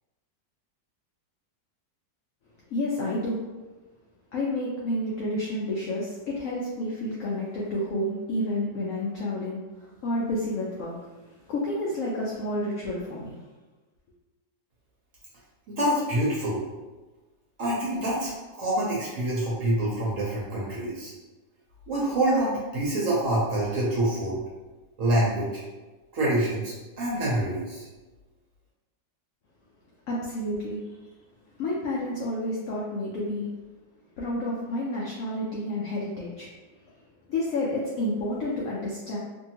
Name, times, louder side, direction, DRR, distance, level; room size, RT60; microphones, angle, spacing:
voice 1, 2.7-3.4 4.3-13.4 30.1-31.0 31.5-33.5 34.2-36.5 37.3-39.2, left 1 dB, 75° left, -5 dB, 0.7 m, -30 dB
voice 2, 15.7-16.6 17.6-21.1 21.9-24.4 25.0-25.6 26.1-27.8, right 1 dB, 60° right, -6 dB, 0.9 m, -26 dB
2.7 x 2.6 x 2.8 m, 1.2 s
omnidirectional pair, 1.9 m